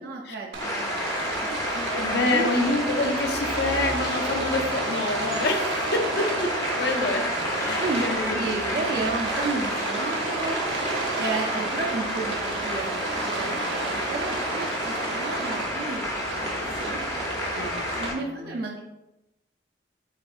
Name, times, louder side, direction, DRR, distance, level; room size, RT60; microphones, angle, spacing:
voice 1, 0.0-2.5 6.6-6.8 7.3-10.6 11.2-12.4 12.6-12.9 13.2-16.5 16.8-17.1 17.3-17.4 18.0-18.8, right 3 dB, 60° right, -1 dB, 0.5 m, -33 dB
Rain, 0.5-18.1, right 2 dB, 85° right, 0.9 m, -31 dB
sound 1, 0.6-18.1, left 1 dB, 20° left, 0.6 m, -31 dB
voice 2, 1.9-8.8 17.5-18.4, left 2 dB, 65° left, 3 dB, 0.6 m, -28 dB
4.8 x 3.6 x 2.4 m, 0.93 s
head